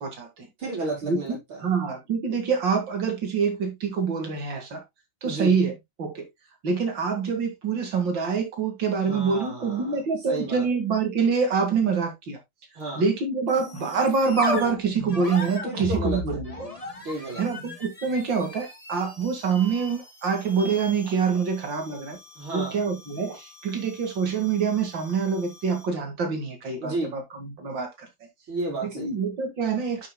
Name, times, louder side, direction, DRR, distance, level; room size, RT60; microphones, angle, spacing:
voice 1, 0.0-0.5 1.1-4.8 5.2-5.7 6.0-6.3 6.6-12.4 13.0-16.7 17.4-22.2 22.5-28.1 28.8-30.1, right 5 dB, 65° right, 2.8 m, -26 dB
voice 2, 0.6-1.8 5.2-5.5 9.0-10.7 12.7-13.0 15.6-16.4 17.0-17.4 22.4-22.8 26.8-27.1 28.5-29.1, right 2 dB, 80° right, 5.7 m, -32 dB
sound 1, 13.5-26.0, left 2 dB, 20° left, 2.1 m, -37 dB
11.0 x 6.4 x 2.2 m
omnidirectional pair, 2.2 m